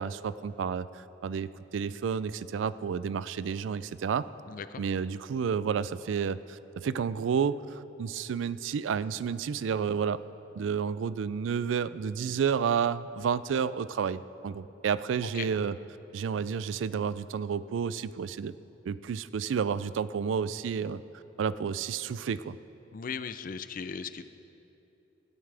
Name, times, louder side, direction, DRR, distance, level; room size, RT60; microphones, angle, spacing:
voice 1, 0.0-4.3 4.8-10.2 10.6-15.8 16.1-18.5 18.9-22.6, right 6 dB, 80° right, 16 dB, 0.3 m, -31 dB
voice 2, 4.5-4.8 15.3-15.5 22.9-24.2, left 6 dB, 45° left, 12 dB, 0.4 m, -37 dB
16.0 x 12.5 x 3.4 m, 3.0 s
head